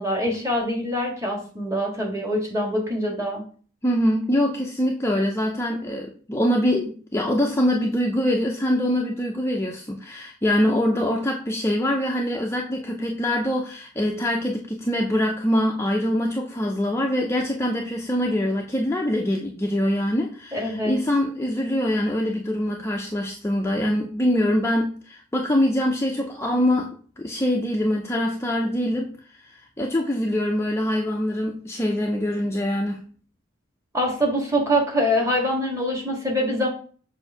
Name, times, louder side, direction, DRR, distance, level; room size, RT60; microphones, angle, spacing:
voice 1, 0.0-3.4 20.5-21.0 33.9-36.7, equal, 15° right, 1.6 m, -24 dB
voice 2, 3.8-33.0, left 1 dB, 10° left, 0.5 m, -24 dB
6.7 x 2.7 x 5.4 m
head